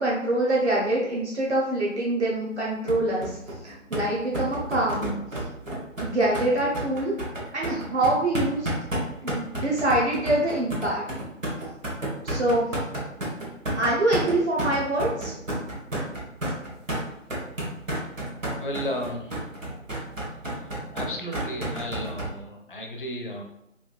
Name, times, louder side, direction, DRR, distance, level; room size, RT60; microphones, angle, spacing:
voice 1, 0.0-3.3 3.6-5.2 6.0-7.2 7.5-8.7 9.2-11.0 12.2-12.7 13.7-15.3, right 1 dB, 60° right, -5 dB, 0.9 m, -25 dB
sound 1, 2.9-22.3, right 1 dB, 75° right, 1.3 m, -31 dB
voice 2, 18.5-19.4 20.5-20.6 20.9-23.4, equal, 45° left, 2 dB, 0.4 m, -34 dB
4.6 x 2.6 x 2.2 m, 0.83 s
figure-of-eight pair, 160°, 39 cm